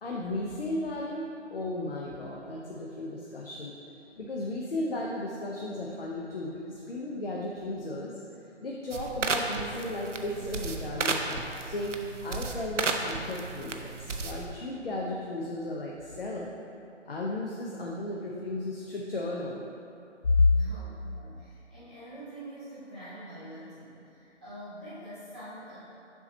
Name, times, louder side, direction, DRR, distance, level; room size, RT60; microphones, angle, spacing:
voice 1, 0.0-3.7 4.2-8.1 8.6-12.0 12.2-16.5 17.1-19.7 20.2-20.5, left 2 dB, 50° left, -3 dB, 0.7 m, -33 dB
sound 1, 8.9-14.6, right 4 dB, 75° right, 0.6 m, -33 dB
voice 2, 20.5-25.8, right 1 dB, 5° right, -19 dB, 0.7 m, -45 dB
6.8 x 2.9 x 5.3 m, 2.6 s
figure-of-eight pair, 160°, 36 cm